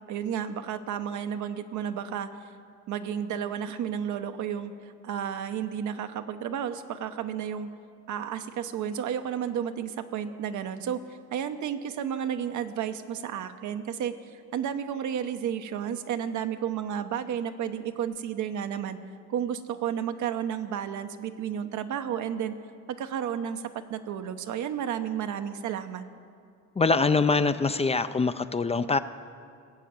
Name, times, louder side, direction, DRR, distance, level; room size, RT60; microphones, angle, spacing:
voice 1, 0.1-2.3 2.9-7.7 8.1-19.0 19.3-22.6 23.0-23.6 23.9-26.0, right 9 dB, 75° right, 8 dB, 0.8 m, -32 dB
voice 2, 26.8-29.0, left 4 dB, 20° left, 12 dB, 0.4 m, -24 dB
16.5 x 6.6 x 8.8 m, 2.3 s
cardioid pair, 90°, 30 cm